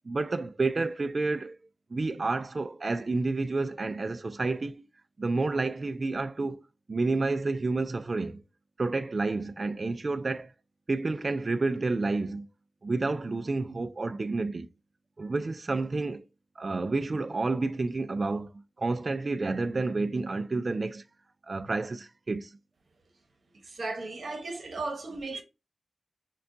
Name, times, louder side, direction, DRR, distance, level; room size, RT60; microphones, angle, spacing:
voice 1, 0.0-1.6 1.9-4.8 5.2-6.6 6.9-8.4 8.8-10.5 10.9-12.5 12.8-14.7 15.2-16.3 16.6-18.5 18.8-21.0 21.5-22.5, right 3 dB, 45° right, 0.3 m, -30 dB
voice 2, 23.6-25.4, right 3 dB, 70° right, 0.9 m, -35 dB
6.1 x 2.3 x 2.6 m
wide cardioid pair, 105°, 0 cm